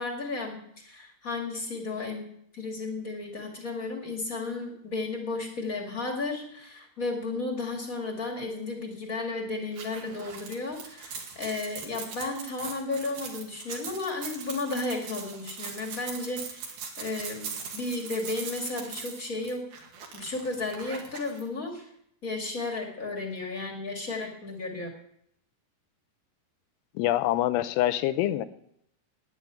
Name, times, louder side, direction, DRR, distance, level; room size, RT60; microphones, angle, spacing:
voice 1, 0.0-2.2 2.5-17.5 17.7-19.6 20.1-21.8 22.2-24.9, left 3 dB, 30° left, 2 dB, 1.6 m, -33 dB
sound 1, 9.7-21.4, right 6 dB, 70° right, 4.0 m, -40 dB
voice 2, 27.0-28.5, left 14 dB, 90° left, 13 dB, 2.9 m, -25 dB
12.0 x 10.0 x 8.7 m, 0.74 s
omnidirectional pair, 4.7 m